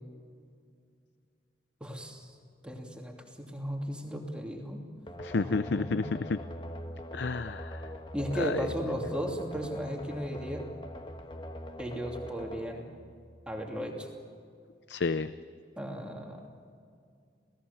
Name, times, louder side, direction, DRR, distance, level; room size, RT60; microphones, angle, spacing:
voice 1, 1.8-2.3 2.6-4.8 5.4-6.1 8.1-10.6 11.8-12.9 13.5-14.1 15.8-16.4, equal, 5° right, 0 dB, 2.8 m, -35 dB
sound 1, 5.1-13.8, equal, 25° left, 1.3 m, -43 dB
voice 2, 5.2-6.4 7.1-7.9 8.4-8.6 14.9-15.3, left 4 dB, 80° left, 12 dB, 0.6 m, -30 dB
27.5 x 18.0 x 7.1 m, 2.3 s
head